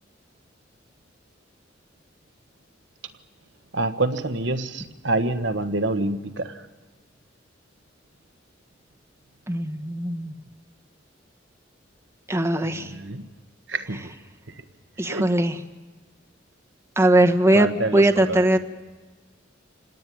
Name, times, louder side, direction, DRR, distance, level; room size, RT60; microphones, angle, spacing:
voice 1, 3.7-6.6 12.6-13.3 13.7-14.1 15.0-15.3 17.5-18.5, right 2 dB, 75° right, 9 dB, 1.5 m, -27 dB
voice 2, 9.5-10.3 12.3-12.9 15.0-15.6 17.0-18.6, right 1 dB, 15° right, 6 dB, 1.1 m, -20 dB
27.0 x 19.0 x 9.4 m, 1.3 s
head